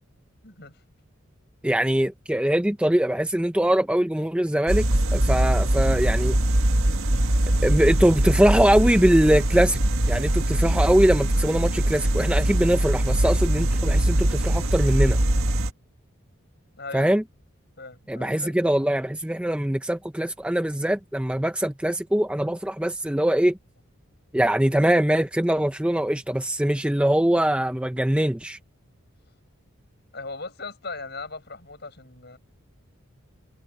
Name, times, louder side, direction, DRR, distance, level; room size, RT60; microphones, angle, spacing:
voice 1, 0.4-0.8 16.8-17.2 17.8-18.5 30.1-32.4, left 3 dB, 50° left, 7.3 m, -38 dB
voice 2, 1.6-6.4 7.6-9.8 10.1-15.2 16.9-17.2 18.1-23.6 24.3-28.6, right 1 dB, 5° right, 0.5 m, -22 dB
sound 1, 4.7-15.7, right 1 dB, 80° right, 1.8 m, -22 dB
head